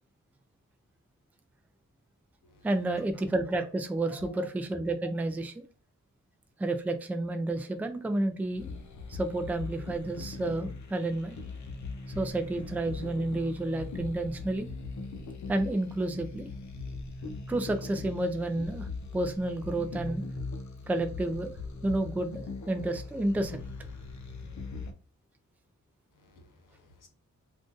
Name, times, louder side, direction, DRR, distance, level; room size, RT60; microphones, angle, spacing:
voice 1, 2.6-5.6 6.6-8.7 9.1-11.4 12.1-14.7 15.5-16.5 17.5-20.2 20.9-21.6 21.8-23.6, right 2 dB, 5° right, 0.3 m, -30 dB
voice 2, 4.0-4.5 26.1-27.1, left 1 dB, 85° left, 0.9 m, -51 dB
sound 1, 8.6-24.9, left 3 dB, 65° left, 0.6 m, -40 dB
2.5 x 2.4 x 3.7 m
wide cardioid pair, 115°, 31 cm